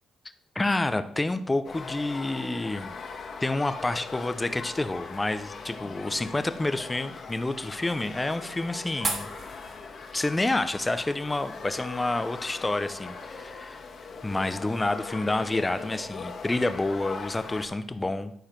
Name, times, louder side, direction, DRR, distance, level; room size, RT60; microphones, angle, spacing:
voice 1, 0.5-2.9 3.4-9.3 10.1-13.8 14.2-18.3, left 2 dB, 15° left, 11 dB, 0.8 m, -28 dB
sound 1, 1.6-17.7, left 4 dB, 50° left, 2.0 m, -40 dB
sound 2, 4.2-12.6, right 2 dB, 35° right, 2.7 m, -42 dB
12.0 x 4.9 x 5.9 m, 0.71 s
cardioid pair, 90°, 0 cm